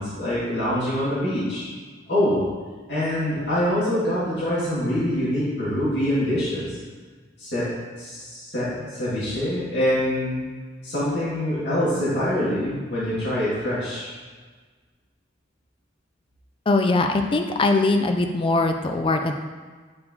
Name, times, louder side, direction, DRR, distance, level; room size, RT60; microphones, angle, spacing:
voice 1, 0.0-1.7 2.1-2.4 2.9-6.8 7.4-7.7 8.0-10.4 10.8-14.1, left 1 dB, 60° left, -10 dB, 1.9 m, -25 dB
voice 2, 16.7-19.3, left 2 dB, 25° left, 5 dB, 0.3 m, -21 dB
8.5 x 4.4 x 2.8 m, 1.4 s
head